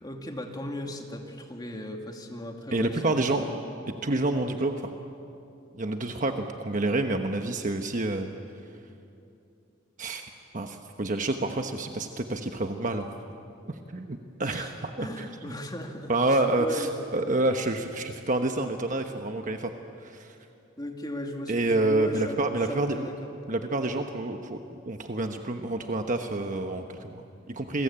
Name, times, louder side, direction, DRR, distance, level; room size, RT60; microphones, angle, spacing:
voice 1, 0.0-3.6 14.4-16.9 20.8-23.3, left 1 dB, 20° left, 3 dB, 2.5 m, -37 dB
voice 2, 2.7-3.4 4.0-4.9 5.8-8.3 10.0-13.1 13.7-15.3 16.1-16.9 17.1-19.7 20.0-20.3 21.5-23.1 23.5-24.6 24.8-27.8, right 2 dB, 45° right, 5 dB, 1.1 m, -28 dB
29.0 x 22.0 x 8.9 m, 2.7 s
head